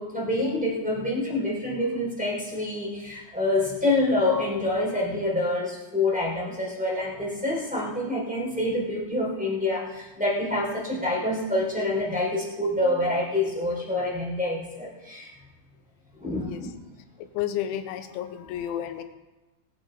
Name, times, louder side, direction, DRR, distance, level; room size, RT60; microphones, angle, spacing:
voice 1, 0.0-15.3 16.2-16.7, left 2 dB, ahead, -6 dB, 2.9 m, -27 dB
voice 2, 17.3-19.0, left 11 dB, 85° left, 10 dB, 3.0 m, -31 dB
20.5 x 8.9 x 4.7 m, 1.1 s
omnidirectional pair, 5.7 m